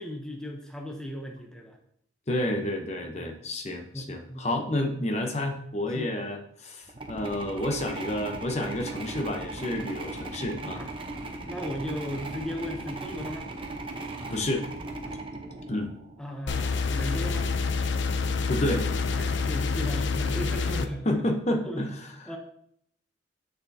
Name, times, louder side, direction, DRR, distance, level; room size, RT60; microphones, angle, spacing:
voice 1, 0.0-1.8 3.2-3.3 3.9-4.5 4.8-4.9 5.9-6.1 10.7-10.9 11.4-13.5 15.0-15.2 16.2-17.5 19.1-21.3 21.6-21.9 22.3-22.4, equal, 5° left, 1 dB, 0.7 m, -36 dB
voice 2, 2.3-10.8 14.3-14.7 15.7-15.9 18.5-18.8 21.0-22.1, left 1 dB, 35° left, 4 dB, 0.8 m, -30 dB
sound 1, 6.9-16.2, right 2 dB, 30° right, 0.8 m, -38 dB
sound 2, 16.5-20.9, left 4 dB, 75° left, 0.5 m, -27 dB
7.9 x 6.7 x 2.7 m, 0.68 s
head